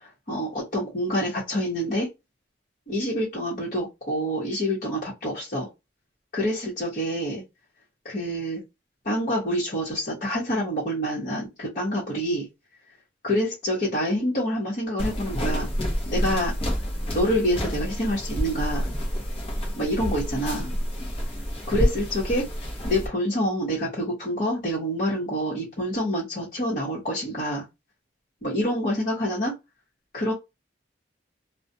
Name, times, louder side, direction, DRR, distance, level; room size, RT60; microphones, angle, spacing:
voice 1, 0.0-2.1 2.9-5.7 6.3-7.4 8.0-8.6 9.0-12.5 13.2-15.7 16.1-16.6 17.1-18.9 19.8-20.7 21.7-22.5 22.8-27.6 28.4-29.6 30.1-30.3, equal, 50° left, 1.0 m, -27 dB
sound 1, 15.0-23.1, equal, 30° left, 0.7 m, -28 dB
2.4 x 2.2 x 2.6 m
head